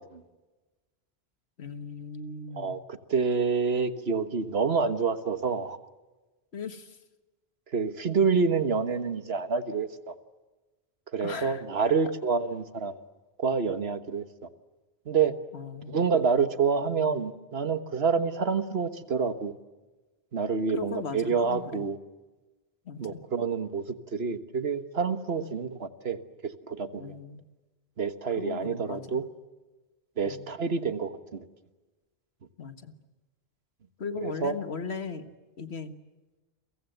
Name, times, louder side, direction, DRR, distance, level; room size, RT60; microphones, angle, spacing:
voice 1, 1.6-2.8 6.5-7.0 11.2-11.6 15.5-16.1 20.7-21.8 22.9-23.2 25.4-25.5 26.9-27.4 28.4-29.2 30.3-30.5 32.6-33.0 34.0-35.3 35.6-35.9, left 5 dB, 85° left, 10 dB, 1.8 m, -38 dB
voice 2, 3.1-5.8 7.7-10.1 11.1-13.0 13.4-14.2 15.1-15.3 15.9-19.5 20.3-22.0 23.0-23.8 24.1-27.1 28.0-29.2 30.2-31.5 34.2-34.5, right 5 dB, 75° right, 11 dB, 1.6 m, -27 dB
30.0 x 23.5 x 8.0 m, 1.2 s
omnidirectional pair, 1.1 m